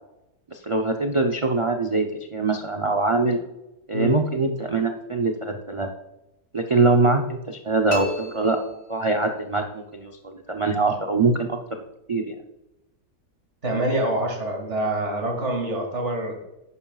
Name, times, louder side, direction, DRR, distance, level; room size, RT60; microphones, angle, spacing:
voice 1, 0.5-3.4 3.9-5.9 6.5-11.8 12.1-12.3, right 3 dB, 35° right, 5 dB, 0.5 m, -23 dB
sound 1, 7.9-9.4, left 2 dB, 55° left, 2.5 m, -35 dB
voice 2, 13.6-16.4, right 1 dB, 50° right, 1 dB, 2.6 m, -25 dB
11.5 x 9.6 x 2.4 m, 0.93 s
omnidirectional pair, 1.5 m